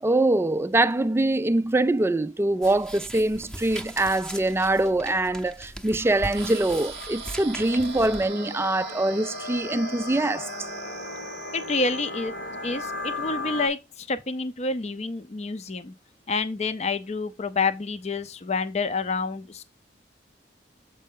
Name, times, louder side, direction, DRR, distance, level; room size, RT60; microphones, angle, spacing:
voice 1, 0.0-10.5, right 2 dB, 15° right, 0.3 m, -24 dB
sound 1, 2.6-8.3, right 1 dB, 5° left, 0.7 m, -40 dB
sound 2, 6.0-13.7, left 2 dB, 70° left, 1.5 m, -36 dB
sound 3, 6.3-12.1, right 12 dB, 65° right, 0.6 m, -44 dB
voice 2, 11.5-12.3 12.6-15.9 16.3-19.6, left 3 dB, 40° left, 0.6 m, -28 dB
7.4 x 5.1 x 3.7 m
head